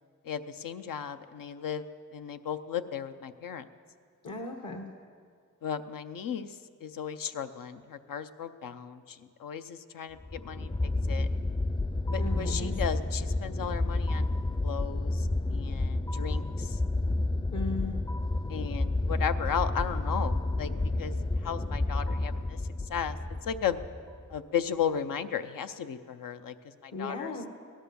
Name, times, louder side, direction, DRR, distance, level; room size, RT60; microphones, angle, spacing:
voice 1, 0.2-1.9 2.1-3.6 5.6-6.6 6.8-10.7 11.1-11.3 12.1-14.3 14.6-16.8 18.5-20.7 21.0-21.1 21.4-22.6 22.9-23.2 23.4-23.8 24.3-26.5 26.8-27.5, left 8 dB, 90° left, 10 dB, 0.7 m, -35 dB
voice 2, 4.2-4.9 12.2-12.8 17.5-17.9 26.9-27.5, left 3 dB, 70° left, 3 dB, 1.4 m, -36 dB
sound 1, 10.2-24.4, left 2 dB, 15° left, 0.4 m, -30 dB
17.5 x 11.5 x 7.0 m, 2.1 s
cardioid pair, 65°, 32 cm